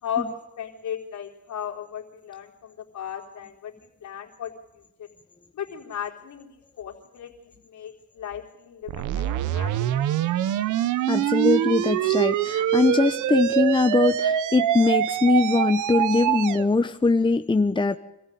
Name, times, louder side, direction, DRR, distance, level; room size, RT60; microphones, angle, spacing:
voice 1, 0.0-3.7 4.0-4.5 5.5-10.1, left 8 dB, 70° left, 0 dB, 4.2 m, -36 dB
sound 1, 8.9-16.7, right 12 dB, 80° right, 0.9 m, -24 dB
voice 2, 11.1-18.0, left 3 dB, 15° left, 8 dB, 1.0 m, -21 dB
26.0 x 15.0 x 9.4 m, 0.88 s
cardioid pair, 90°, 30 cm